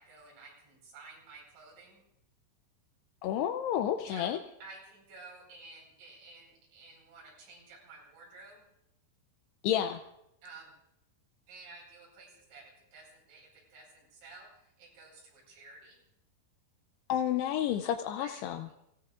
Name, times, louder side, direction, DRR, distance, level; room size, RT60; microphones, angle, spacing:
voice 1, 0.0-2.0 4.0-8.6 10.4-10.7 11.5-16.0 18.2-18.4, right 3 dB, 80° right, -3 dB, 7.0 m, -52 dB
voice 2, 3.2-4.4 9.6-10.0 17.1-18.7, left 10 dB, 90° left, 7 dB, 2.3 m, -30 dB
29.5 x 17.0 x 2.4 m, 0.82 s
omnidirectional pair, 5.5 m